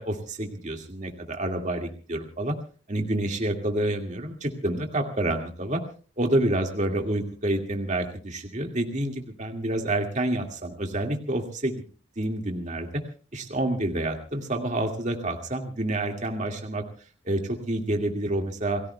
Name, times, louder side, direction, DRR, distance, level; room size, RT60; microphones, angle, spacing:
voice 1, 0.0-2.6 2.9-5.8 6.2-11.8 12.2-13.0 13.3-16.8 17.3-18.8, right 1 dB, 35° right, 3 dB, 2.1 m, -28 dB
28.5 x 19.5 x 2.3 m, 0.39 s
head